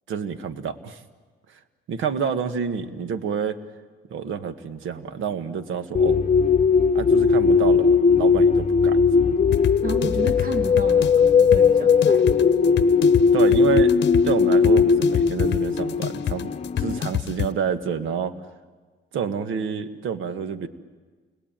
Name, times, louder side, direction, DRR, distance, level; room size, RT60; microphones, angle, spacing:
voice 1, 0.1-1.0 1.9-3.6 4.1-6.3 6.9-9.0 9.3-9.4 13.3-13.9 14.2-16.5 16.8-18.3 19.1-20.7, right 7 dB, 80° right, 10 dB, 1.7 m, -28 dB
sound 1, 5.9-17.0, left 5 dB, 35° left, 1.0 m, -18 dB
sound 2, 9.5-17.5, left 12 dB, 60° left, 0.9 m, -28 dB
voice 2, 9.8-12.5, right 2 dB, 45° right, 5 dB, 2.2 m, -32 dB
29.0 x 21.5 x 9.0 m, 1.4 s
cardioid pair, 90°, 20 cm